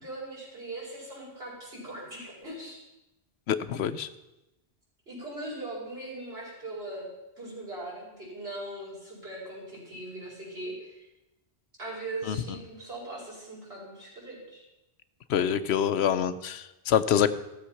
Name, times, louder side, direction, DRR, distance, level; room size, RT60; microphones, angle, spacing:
voice 1, 0.0-2.8 5.1-7.1 7.4-11.1 11.8-14.6, right 2 dB, 75° right, -6 dB, 5.1 m, -40 dB
voice 2, 3.5-4.1 12.3-12.4 15.3-17.3, left 9 dB, 85° left, 13 dB, 0.9 m, -25 dB
14.5 x 7.1 x 5.8 m, 0.96 s
omnidirectional pair, 1.1 m